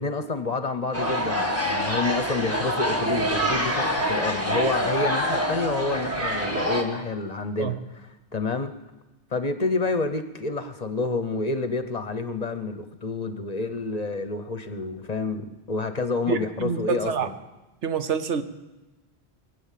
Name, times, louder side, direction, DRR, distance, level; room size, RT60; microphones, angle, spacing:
voice 1, 0.0-7.8 8.3-8.7 9.3-17.3, left 3 dB, 40° left, 9 dB, 0.8 m, -28 dB
sound 1, 0.9-6.8, equal, 15° right, 1.6 m, -26 dB
voice 2, 16.3-17.3 17.8-18.4, right 6 dB, 80° right, 10 dB, 1.2 m, -27 dB
22.0 x 8.2 x 7.4 m, 1.1 s
omnidirectional pair, 1.2 m